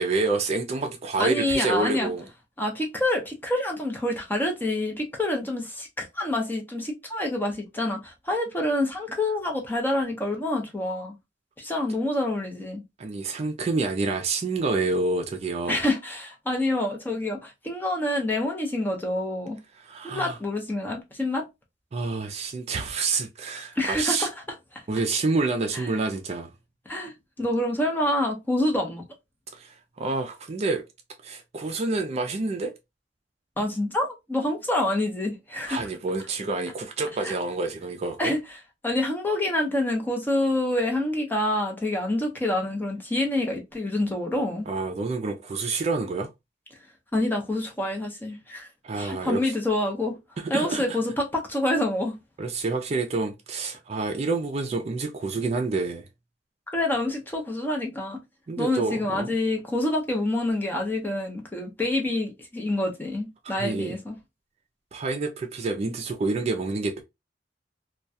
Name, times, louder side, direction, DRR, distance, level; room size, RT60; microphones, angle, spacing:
voice 1, 0.0-2.3 13.0-15.8 19.8-20.4 21.9-24.3 24.9-26.5 29.5-30.8 31.2-32.7 35.7-38.3 44.7-46.3 48.8-49.6 50.5-51.0 52.4-56.0 58.5-59.3 63.6-64.0 64.9-67.0, right 3 dB, 35° right, 0.4 m, -28 dB
voice 2, 1.2-2.1 2.6-11.1 11.6-12.8 15.7-19.6 20.0-21.4 23.8-24.3 25.7-25.8 26.9-29.0 33.6-35.8 37.2-37.3 38.2-38.4 38.8-44.7 47.1-48.7 49.0-50.2 50.5-52.1 56.7-58.2 58.6-64.2, left 1 dB, 10° left, 0.6 m, -27 dB
2.3 x 2.2 x 2.6 m
head